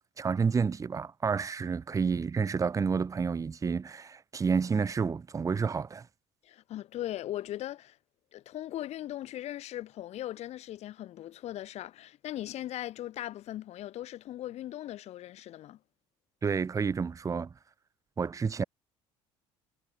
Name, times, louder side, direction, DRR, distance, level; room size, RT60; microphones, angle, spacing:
voice 1, 0.2-6.1 16.4-17.5 18.2-18.6, right 5 dB, 25° right, 1.2 m, -29 dB
voice 2, 6.4-8.0 8.3-15.8, left 13 dB, 60° left, 1.8 m, -39 dB
supercardioid pair, 95°, 13 cm